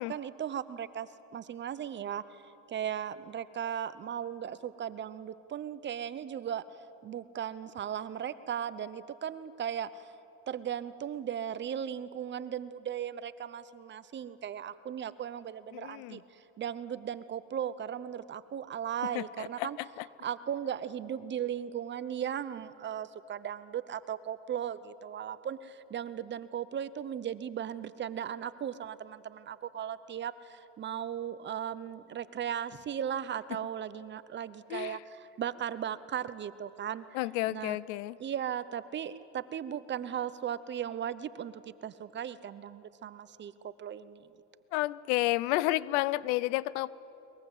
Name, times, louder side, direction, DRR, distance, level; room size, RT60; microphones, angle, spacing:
voice 1, 0.0-2.4 2.7-6.7 7.0-10.1 10.5-19.8 20.2-37.0 37.5-37.8 38.2-44.3, right 9 dB, 30° right, 15 dB, 0.8 m, -37 dB
voice 2, 15.7-16.2 19.1-20.1 34.7-35.0 37.1-38.2 44.7-46.9, left 18 dB, 75° left, 20 dB, 0.7 m, -31 dB
22.5 x 21.0 x 8.0 m, 3.0 s
supercardioid pair, 110°, 35 cm